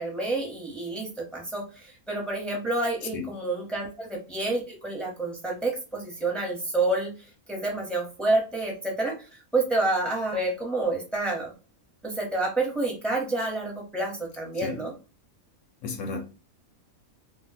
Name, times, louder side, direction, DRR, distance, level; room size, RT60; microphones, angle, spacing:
voice 1, 0.0-7.1 7.5-9.1 9.5-11.5 12.0-14.9, right 2 dB, ahead, 0.7 m, -28 dB
voice 2, 15.8-16.2, left 4 dB, 65° left, 0.9 m, -33 dB
2.3 x 2.3 x 3.9 m
omnidirectional pair, 1.5 m